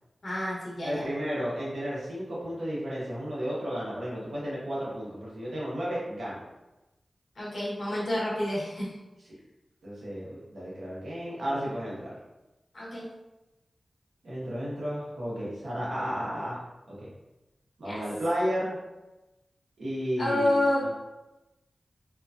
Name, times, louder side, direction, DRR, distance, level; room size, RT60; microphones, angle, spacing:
voice 1, 0.2-1.0 7.4-8.9 12.7-13.0 17.8-18.0 20.2-20.8, left 1 dB, 65° left, -8 dB, 1.1 m, -28 dB
voice 2, 0.8-6.4 9.8-12.1 14.2-16.6 16.9-17.1 17.8-18.8 19.8-20.9, equal, 85° right, -7 dB, 1.0 m, -33 dB
2.9 x 2.3 x 2.4 m, 1.0 s
cardioid pair, 55°, 0 cm